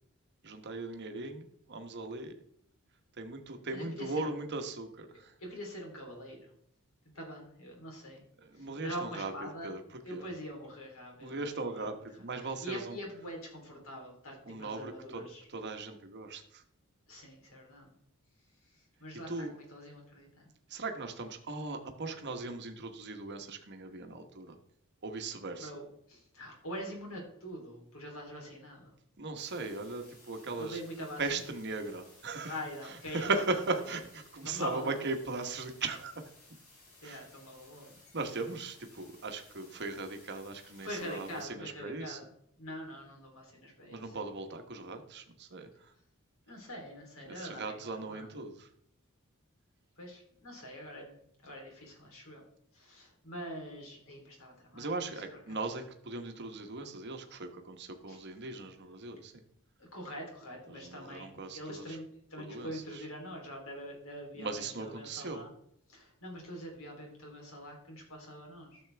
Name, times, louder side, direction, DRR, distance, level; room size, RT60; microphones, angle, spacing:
voice 1, 0.4-2.3 3.2-5.3 8.4-9.8 10.1-10.3 11.2-13.0 14.5-15.2 15.5-16.6 19.3-19.5 20.7-24.6 25.0-25.7 29.2-30.8 31.2-32.6 32.9-36.3 37.0-37.2 38.1-42.2 43.9-45.9 47.3-48.7 54.7-59.4 60.7-62.0 62.4-63.0 64.4-65.4, right 3 dB, 50° right, 6 dB, 1.2 m, -38 dB
voice 2, 3.7-4.3 5.4-6.5 7.1-8.2 8.5-9.7 10.0-11.9 12.6-15.5 17.1-17.9 18.7-20.5 25.6-28.9 30.6-31.4 32.5-33.4 34.4-35.0 37.0-37.9 40.8-42.3 42.6-44.0 46.5-48.3 50.0-52.4 52.7-55.6 58.1-58.2 59.8-65.5 65.9-68.8, equal, 65° left, 0 dB, 3.3 m, -44 dB
sound 1, 29.4-41.5, left 2 dB, 80° left, 4.5 m, -59 dB
12.5 x 7.1 x 3.4 m, 0.71 s
head